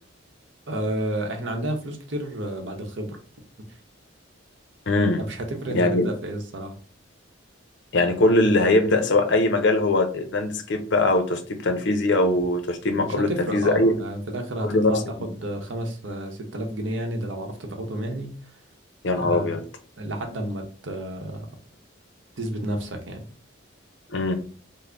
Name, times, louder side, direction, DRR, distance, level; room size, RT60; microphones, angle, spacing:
voice 1, 0.7-3.2 5.2-6.7 13.0-18.3 19.1-19.6 20.0-21.5 22.4-23.3, right 1 dB, 70° right, 4 dB, 0.8 m, -31 dB
voice 2, 4.9-5.2 5.7-6.1 7.9-13.9 14.6-15.0 19.0-19.6 24.1-24.3, left 2 dB, 60° left, 7 dB, 0.5 m, -21 dB
3.8 x 2.0 x 3.3 m, 0.41 s
head